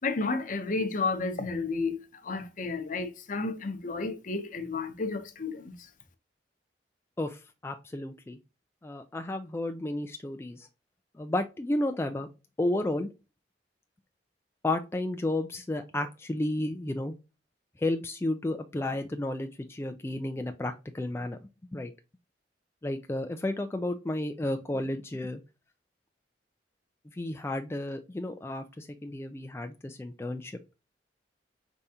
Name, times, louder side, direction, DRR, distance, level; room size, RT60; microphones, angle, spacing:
voice 1, 0.0-5.7, left 3 dB, 50° left, 0.7 m, -32 dB
voice 2, 7.2-8.4 8.8-10.7 11.2-12.3 12.6-13.1 14.6-17.1 17.8-21.4 21.7-21.9 22.8-25.4 27.1-30.6, left 1 dB, 15° left, 0.3 m, -32 dB
5.2 x 3.5 x 2.8 m
head